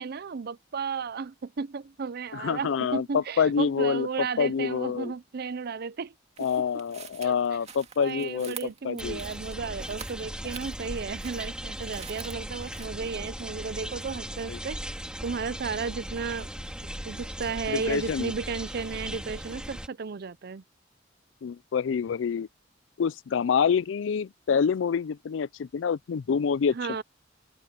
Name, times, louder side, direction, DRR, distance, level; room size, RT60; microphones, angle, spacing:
voice 1, 0.0-6.5 7.2-7.4 8.0-14.8 15.2-16.5 17.0-20.6 26.7-27.0, right 5 dB, 55° right, 0.5 m, -34 dB
voice 2, 2.3-5.1 6.4-9.2 14.5-14.6 17.7-18.3 21.4-22.5 23.0-26.8, left 6 dB, 75° left, 0.4 m, -27 dB
sound 1, 6.4-12.9, right 7 dB, 35° right, 2.1 m, -46 dB
sound 2, 9.0-19.9, equal, 5° right, 2.2 m, -38 dB
open air
head